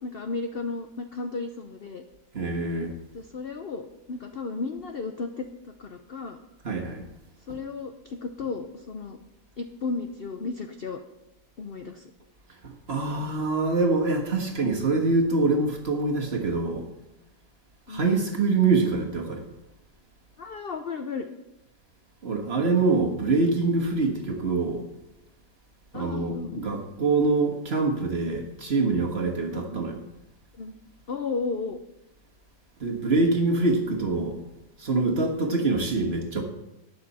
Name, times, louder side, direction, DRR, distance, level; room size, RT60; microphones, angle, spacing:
voice 1, 0.0-2.0 3.1-6.4 7.5-9.2 9.6-11.0 11.6-12.0 17.9-18.2 20.4-21.3 25.9-26.7 29.5-29.8 30.6-30.7 31.1-31.8 35.4-35.7, left 4 dB, 55° left, 6 dB, 0.6 m, -34 dB
voice 2, 2.3-2.9 6.6-7.0 7.5-7.6 12.6-16.9 17.9-19.5 22.2-24.9 25.9-30.0 32.8-34.4 34.8-36.4, right 3 dB, 40° right, 1 dB, 1.6 m, -25 dB
12.5 x 9.1 x 4.2 m, 0.97 s
omnidirectional pair, 1.8 m